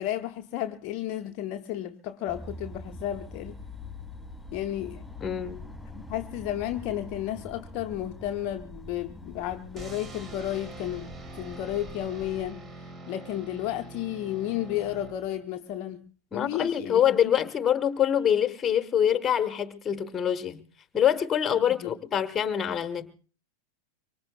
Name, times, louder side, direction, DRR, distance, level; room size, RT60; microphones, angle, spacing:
voice 1, 0.0-3.6 4.5-5.0 5.9-16.0 16.3-17.4 21.7-21.9, left 12 dB, 40° left, 0.7 m, -33 dB
sound 1, 2.3-12.5, left 2 dB, ahead, 3.8 m, -44 dB
voice 2, 5.2-5.6 16.3-20.6 20.9-23.1, left 9 dB, 20° left, 1.2 m, -25 dB
sound 2, 9.8-15.6, right 3 dB, 20° right, 1.8 m, -44 dB
24.5 x 24.5 x 2.3 m
figure-of-eight pair, 90°, 0 cm